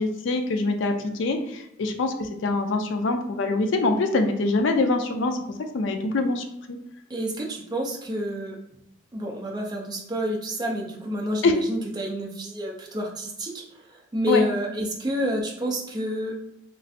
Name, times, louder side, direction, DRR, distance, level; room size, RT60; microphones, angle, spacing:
voice 1, 0.0-5.4 5.7-6.8 11.4-11.5 14.3-14.4, left 3 dB, 65° left, 5 dB, 0.4 m, -24 dB
voice 2, 7.1-8.6 9.1-13.6 14.1-16.3, equal, 20° right, -1 dB, 0.4 m, -29 dB
3.1 x 2.4 x 2.6 m, 0.82 s
head